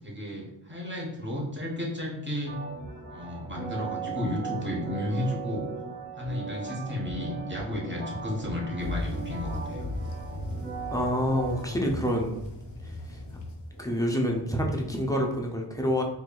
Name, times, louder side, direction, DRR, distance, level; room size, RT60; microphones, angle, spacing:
voice 1, 0.0-2.6 3.1-5.7 6.1-9.9, left 1 dB, 25° right, -3 dB, 1.1 m, -33 dB
sound 1, 2.5-12.2, right 5 dB, 60° right, 1.0 m, -38 dB
sound 2, 8.8-15.5, left 2 dB, 85° left, 0.8 m, -38 dB
voice 2, 10.9-12.4 12.8-13.2 13.8-16.0, equal, 10° left, 0 dB, 0.6 m, -27 dB
4.4 x 2.7 x 2.3 m, 0.93 s
wide cardioid pair, 75°, 46 cm